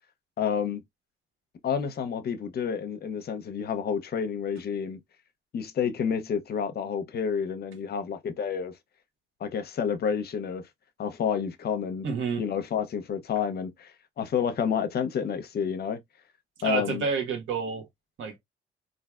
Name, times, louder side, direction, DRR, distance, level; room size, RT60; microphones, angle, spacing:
voice 1, 0.4-0.8 1.6-5.0 5.5-8.7 9.4-10.7 11.0-12.1 12.4-13.9 14.2-16.0 16.6-17.0, left 7 dB, 55° left, 0.6 m, -29 dB
voice 2, 12.0-12.4 16.6-17.8 18.2-18.3, right 5 dB, 80° right, 1.0 m, -29 dB
3.3 x 2.6 x 2.3 m
cardioid pair, 90°, 20 cm